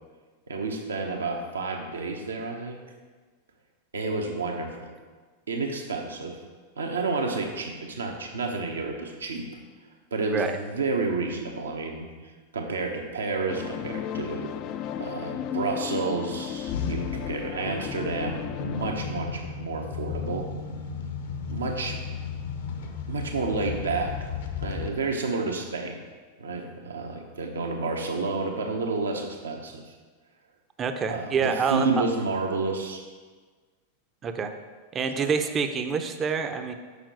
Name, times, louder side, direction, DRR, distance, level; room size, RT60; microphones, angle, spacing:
voice 1, 0.5-2.8 3.9-4.9 5.5-6.4 6.8-9.5 10.1-12.1 12.5-14.5 15.0-20.5 21.5-22.0 23.1-24.3 24.6-26.0 26.4-29.8 31.1-33.0 35.2-35.3, right 3 dB, 70° right, 3 dB, 1.0 m, -30 dB
sound 1, 13.5-18.9, left 10 dB, 40° left, 0.3 m, -34 dB
sound 2, 16.4-24.9, left 6 dB, 60° left, 0.8 m, -35 dB
voice 2, 30.8-31.8 34.2-34.5 34.9-36.7, right 5 dB, 25° right, 7 dB, 0.6 m, -27 dB
6.8 x 5.8 x 4.8 m, 1.4 s
figure-of-eight pair, 90°, 0 cm